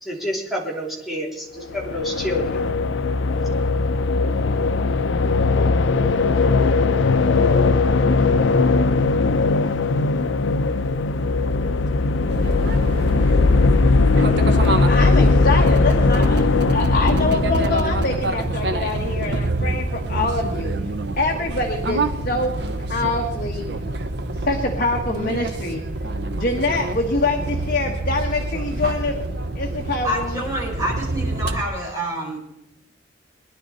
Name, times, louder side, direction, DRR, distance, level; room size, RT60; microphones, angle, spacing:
voice 1, 0.0-2.7, equal, ahead, -4 dB, 3.0 m, -29 dB
sound 1, 1.6-18.6, left 3 dB, 85° left, 0.5 m, -19 dB
sound 2, 12.3-31.6, right 2 dB, 65° right, 0.9 m, -27 dB
voice 2, 14.9-20.7 21.2-22.5 22.9-23.6 24.4-25.8 26.3-29.2 29.5-30.4, left 2 dB, 50° left, 1 dB, 1.4 m, -25 dB
voice 3, 30.0-32.4, right 1 dB, 20° right, -4 dB, 5.0 m, -27 dB
21.0 x 11.0 x 4.2 m, 0.90 s
head